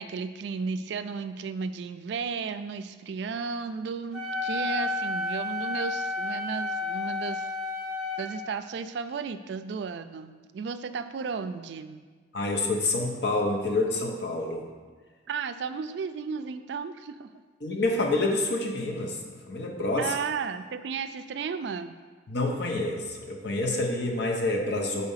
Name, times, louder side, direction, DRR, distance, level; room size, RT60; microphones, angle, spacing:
voice 1, 0.0-7.5 8.2-12.0 15.3-17.3 20.0-22.0, right 5 dB, 65° right, 11 dB, 0.3 m, -34 dB
Wind instrument woodwind instrument, 4.1-8.3, left 2 dB, 5° right, 0.8 m, -31 dB
voice 2, 12.3-14.7 17.6-19.2 19.5-20.1 22.3-25.0, left 2 dB, 60° left, 1 dB, 0.8 m, -27 dB
4.8 x 4.2 x 5.6 m, 1.5 s
head